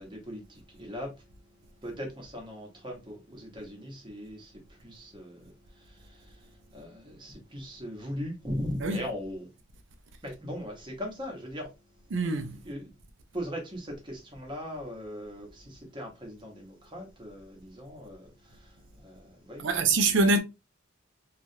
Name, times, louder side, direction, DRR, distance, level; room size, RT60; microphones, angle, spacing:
voice 1, 0.0-9.5 10.2-11.7 12.6-12.9 13.3-20.0, equal, 25° right, 1.0 m, -40 dB
voice 2, 12.1-12.6 19.6-20.4, right 3 dB, 65° right, 0.5 m, -24 dB
3.0 x 2.4 x 2.6 m
head